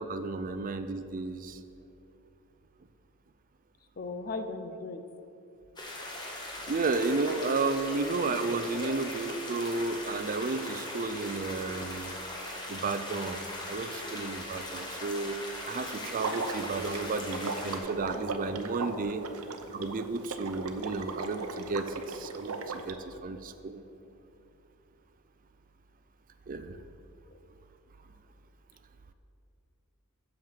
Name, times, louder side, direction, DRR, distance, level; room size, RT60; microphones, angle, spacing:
voice 1, 0.0-1.6 6.7-12.2 12.7-15.4 15.7-19.2 19.7-23.8 26.5-26.8, right 3 dB, 40° right, 11 dB, 0.4 m, -33 dB
voice 2, 4.0-5.0 8.8-9.0 18.9-19.4 27.3-27.4, left 3 dB, 40° left, 8 dB, 0.6 m, -38 dB
sound 1, 5.8-17.8, left 1 dB, 20° left, 1.5 m, -40 dB
Water / Liquid, 16.2-22.9, right 3 dB, 70° right, 0.7 m, -37 dB
7.8 x 7.2 x 7.4 m, 2.7 s
head